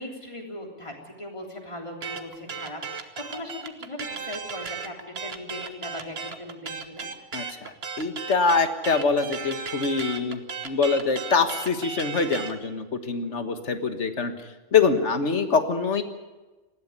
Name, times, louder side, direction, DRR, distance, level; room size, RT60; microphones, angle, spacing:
voice 1, 0.0-7.1, left 1 dB, 25° left, 1 dB, 3.6 m, -39 dB
sound 1, 2.0-12.6, right 5 dB, 55° right, 1.5 m, -35 dB
voice 2, 7.3-14.3 14.7-16.0, left 5 dB, 65° left, 8 dB, 1.8 m, -24 dB
20.0 x 14.5 x 9.8 m, 1.2 s
omnidirectional pair, 1.3 m